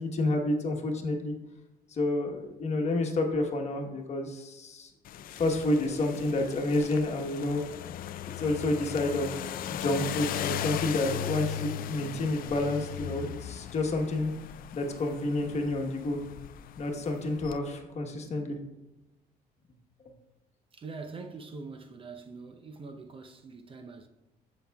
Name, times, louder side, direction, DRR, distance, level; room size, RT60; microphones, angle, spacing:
voice 1, 0.0-1.3 1.9-4.9 5.3-7.6 8.2-14.3 14.7-16.2 16.8-18.6, left 2 dB, 40° left, 1.2 m, -29 dB
sound 1, 5.0-17.6, left 10 dB, 60° left, 0.4 m, -38 dB
voice 2, 20.7-24.1, right 4 dB, 30° right, 0.7 m, -43 dB
15.5 x 5.8 x 2.3 m
cardioid pair, 110°, 17 cm